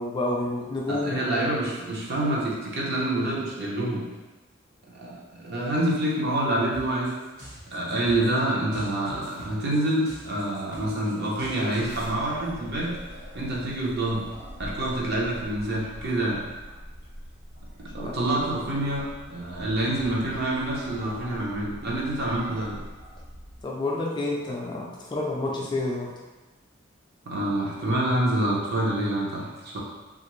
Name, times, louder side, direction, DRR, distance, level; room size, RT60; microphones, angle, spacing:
voice 1, 0.0-1.3 17.9-18.3 23.6-26.1, left 2 dB, 20° left, -2 dB, 0.3 m, -29 dB
voice 2, 0.9-4.0 4.9-7.1 7.7-13.0 13.3-14.2 14.6-16.4 17.9-22.8 27.3-29.8, right 1 dB, 55° right, -4 dB, 0.7 m, -27 dB
sound 1, 6.7-12.1, equal, 70° right, 1.1 m, -45 dB
sound 2, 11.8-23.6, equal, 85° right, 1.1 m, -43 dB
2.8 x 2.4 x 3.1 m, 1.2 s
head